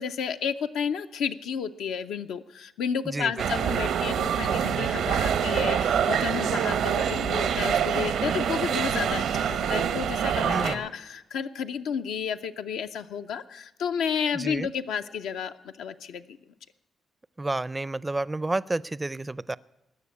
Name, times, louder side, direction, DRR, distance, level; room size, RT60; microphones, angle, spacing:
voice 1, 0.0-16.4, left 7 dB, 85° left, 7 dB, 0.6 m, -31 dB
voice 2, 3.1-3.5 10.4-10.9 14.3-14.7 17.4-19.6, right 2 dB, 20° right, 21 dB, 0.4 m, -30 dB
sound 1, 3.4-10.8, right 8 dB, 85° right, 0.9 m, -26 dB
19.0 x 6.8 x 8.4 m, 0.98 s
cardioid pair, 90°, 0 cm